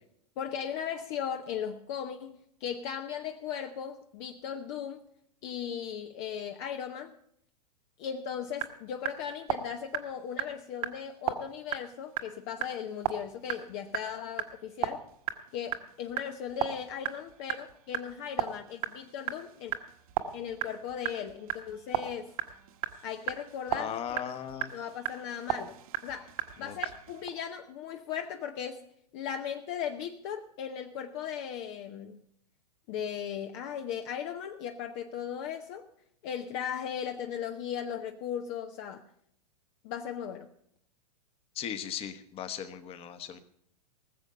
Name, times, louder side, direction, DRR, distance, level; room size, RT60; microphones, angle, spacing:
voice 1, 0.4-5.0 5.4-7.2 8.0-15.0 15.5-19.7 20.3-22.3 23.0-24.2 24.7-25.8 26.0-28.9 29.1-32.2 32.9-35.9 36.2-39.0 39.8-40.5, left 8 dB, 45° left, 6 dB, 0.9 m, -37 dB
sound 1, 8.3-27.3, right 10 dB, 60° right, 1.4 m, -37 dB
voice 2, 23.7-24.7 26.6-26.7 41.5-43.4, left 9 dB, 30° left, 10 dB, 1.3 m, -37 dB
19.5 x 7.2 x 6.8 m, 0.71 s
hypercardioid pair, 115°, 21 cm